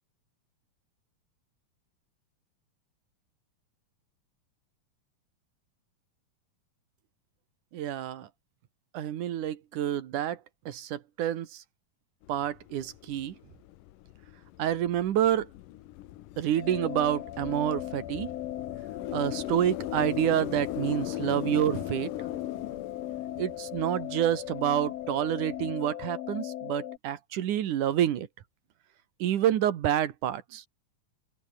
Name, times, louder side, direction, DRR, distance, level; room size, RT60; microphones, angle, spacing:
voice 1, 7.7-8.3 8.9-10.4 10.7-11.6 12.3-13.4 14.6-15.5 16.4-18.3 19.1-22.1 23.4-28.3 29.2-30.7, right 11 dB, 75° right, 2.9 m, -28 dB
sound 1, 12.2-25.7, left 15 dB, 85° left, 2.6 m, -41 dB
sound 2, 16.6-27.0, left 12 dB, 65° left, 2.0 m, -38 dB
open air
omnidirectional pair, 3.7 m